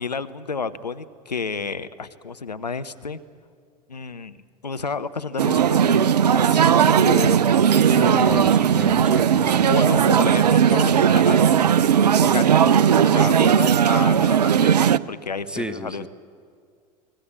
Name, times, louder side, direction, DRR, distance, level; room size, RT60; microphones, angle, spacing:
voice 1, 0.0-3.2 3.9-7.4 7.8-8.3 9.6-11.6 12.1-16.1, left 5 dB, 85° left, 13 dB, 0.7 m, -31 dB
sound 1, 5.4-15.0, right 8 dB, 80° right, 0.5 m, -17 dB
voice 2, 8.0-9.8 15.5-16.1, right 1 dB, 5° right, 12 dB, 1.1 m, -32 dB
24.5 x 19.5 x 7.4 m, 2.1 s
figure-of-eight pair, 75°, 21 cm